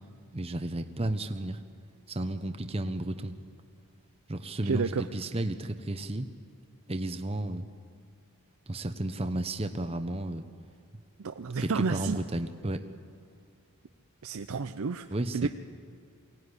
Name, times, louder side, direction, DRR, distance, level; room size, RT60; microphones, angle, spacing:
voice 1, 0.3-1.6 2.1-3.3 4.3-6.3 6.9-7.7 8.7-10.5 11.6-12.9 15.1-15.5, right 1 dB, 25° right, 8 dB, 0.8 m, -33 dB
voice 2, 4.6-5.1 11.2-12.2 14.2-15.1 15.3-15.5, right 5 dB, 70° right, 9 dB, 0.5 m, -30 dB
23.0 x 17.5 x 9.8 m, 2.2 s
head